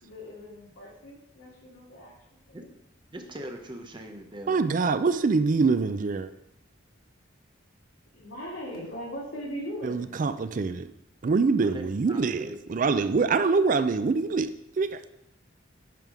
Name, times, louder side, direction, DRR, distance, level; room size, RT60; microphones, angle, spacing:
voice 1, 0.0-2.1 2.5-2.7 8.1-10.3, equal, 85° left, -4 dB, 2.5 m, -39 dB
voice 2, 3.1-4.7 11.6-12.6, right 1 dB, 25° right, 4 dB, 0.8 m, -41 dB
voice 3, 4.5-6.3 9.8-10.9 11.2-14.5 14.8-15.0, right 4 dB, 40° right, 12 dB, 0.4 m, -24 dB
9.0 x 3.5 x 6.1 m, 0.81 s
head